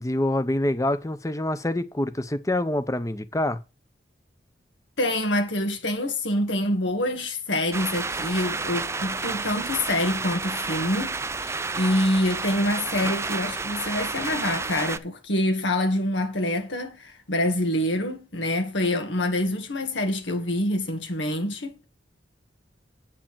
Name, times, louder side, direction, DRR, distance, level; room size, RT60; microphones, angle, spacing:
voice 1, 0.0-3.6, left 1 dB, 20° left, 0.7 m, -26 dB
voice 2, 5.0-21.9, left 1 dB, 80° left, 2.0 m, -26 dB
sound 1, 7.7-15.0, right 4 dB, 15° right, 0.4 m, -30 dB
8.7 x 4.8 x 7.4 m
head